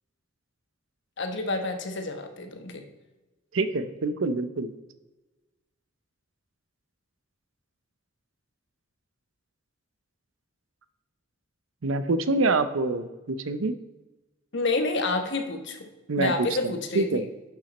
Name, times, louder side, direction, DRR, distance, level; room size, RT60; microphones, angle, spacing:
voice 1, 1.2-2.8 14.5-15.9 16.2-17.1, left 3 dB, 60° left, 5 dB, 1.2 m, -29 dB
voice 2, 3.5-4.7 11.8-13.7 16.1-17.3, right 3 dB, 75° right, 12 dB, 0.6 m, -26 dB
11.0 x 6.0 x 4.2 m, 1.1 s
head